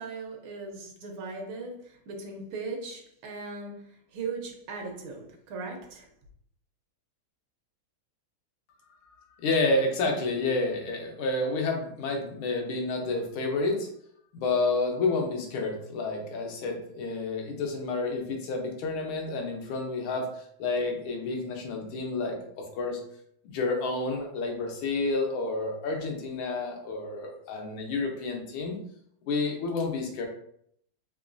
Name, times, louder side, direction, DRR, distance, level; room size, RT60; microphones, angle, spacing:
voice 1, 0.0-6.1, right 4 dB, 80° right, 2 dB, 1.5 m, -38 dB
voice 2, 9.4-13.9 14.3-23.0 23.4-28.8 29.3-30.3, left 3 dB, 85° left, 2 dB, 1.6 m, -30 dB
4.0 x 2.9 x 2.5 m, 0.69 s
omnidirectional pair, 2.3 m